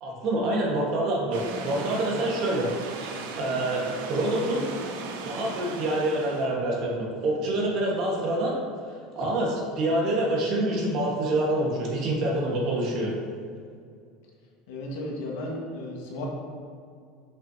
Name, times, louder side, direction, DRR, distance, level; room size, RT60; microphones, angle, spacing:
voice 1, 0.0-2.7 3.0-4.6 5.2-8.5 9.1-13.1, right 1 dB, 40° right, -2 dB, 1.4 m, -26 dB
sound 1, 1.3-6.5, right 4 dB, 80° right, 0.7 m, -37 dB
voice 2, 14.7-16.3, left 1 dB, 75° left, -2 dB, 1.5 m, -34 dB
7.4 x 5.6 x 2.8 m, 2.3 s
cardioid pair, 170°, 0 cm